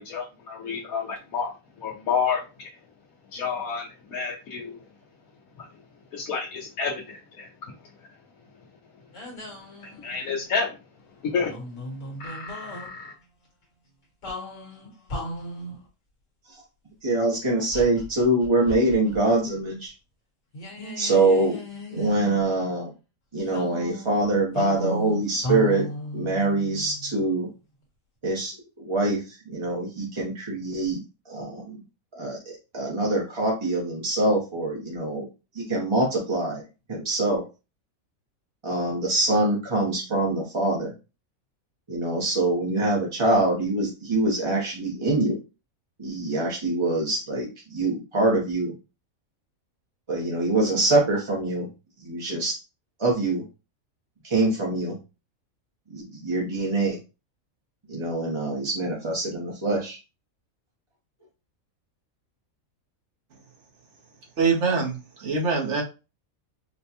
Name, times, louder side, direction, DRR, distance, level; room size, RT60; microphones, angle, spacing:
voice 1, 0.0-1.5 1.8-2.7 3.3-4.8 5.6-5.7 6.1-7.5 9.8-10.7 11.3-11.5 12.2-13.1, left 5 dB, 90° left, -3 dB, 1.2 m, -30 dB
sound 1, 9.1-10.4 11.4-12.9 14.2-15.8 17.7-19.2 19.5-19.6 20.5-22.7 23.5-27.2, equal, 65° left, 1.5 m, -35 dB
voice 2, 17.0-19.9 21.0-21.6 21.9-22.9 23.3-25.8 26.1-27.5 28.2-31.0 31.3-31.8 32.1-32.4 32.7-35.3 35.5-36.6 36.9-37.4 38.6-40.9 41.9-45.4 46.0-48.7 50.1-51.7 52.0-52.5 53.0-53.4 54.2-54.9 55.9-57.0 57.9-60.0, right 2 dB, 30° right, -3 dB, 0.7 m, -24 dB
voice 3, 64.4-65.8, right 4 dB, 60° right, 0 dB, 1.2 m, -24 dB
4.2 x 2.2 x 2.8 m, 0.29 s
omnidirectional pair, 1.4 m